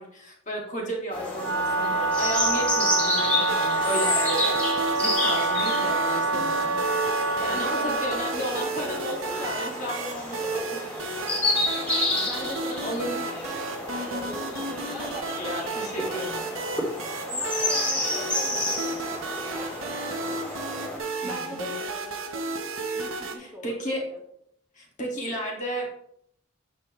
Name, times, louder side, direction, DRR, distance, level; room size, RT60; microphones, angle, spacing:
voice 1, 0.0-6.8 7.4-11.0 12.8-13.2 15.4-16.5 21.2-21.7 23.4-24.0 24.7-25.9, equal, 35° left, -1 dB, 2.1 m, -33 dB
sound 1, 1.1-21.0, left 2 dB, 5° left, 2.6 m, -30 dB
Wind instrument woodwind instrument, 1.3-8.4, right 3 dB, 60° right, 0.8 m, -26 dB
sound 2, 3.5-23.4, right 3 dB, 80° right, 1.1 m, -33 dB
voice 2, 7.3-8.7 11.8-15.3 15.6-16.6 17.3-20.4 21.2-22.4 22.9-24.2, equal, 10° right, -2 dB, 1.5 m, -42 dB
8.7 x 7.1 x 3.1 m, 0.71 s
head